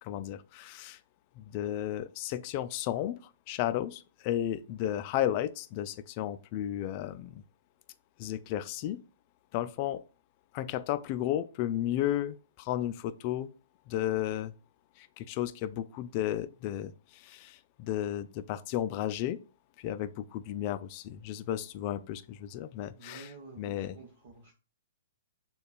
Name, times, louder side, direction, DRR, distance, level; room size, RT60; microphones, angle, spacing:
voice 1, 0.0-1.0 1.4-3.2 3.5-7.4 8.2-9.0 9.5-10.0 10.5-13.5 13.9-14.5 15.0-19.4 19.8-23.3 23.6-24.0, left 12 dB, 35° left, 0.3 m, -33 dB
voice 2, 22.9-24.5, right 3 dB, 55° right, 1.0 m, -50 dB
6.5 x 2.3 x 2.4 m
hypercardioid pair, 150°, 0 cm